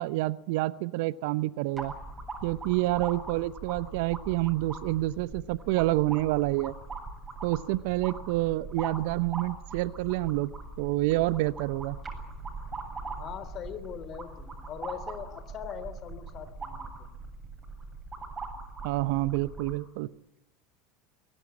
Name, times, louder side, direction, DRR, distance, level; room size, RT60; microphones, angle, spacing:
voice 1, 0.0-1.9 2.4-6.7 7.4-10.5 10.8-12.0 18.8-20.1, right 18 dB, 65° right, 17 dB, 0.8 m, -28 dB
sound 1, 1.8-19.8, right 3 dB, 20° right, 7.9 m, -41 dB
voice 2, 13.1-17.1, left 8 dB, 45° left, 12 dB, 3.6 m, -41 dB
22.0 x 18.0 x 9.8 m, 0.90 s
hypercardioid pair, 80°, 0 cm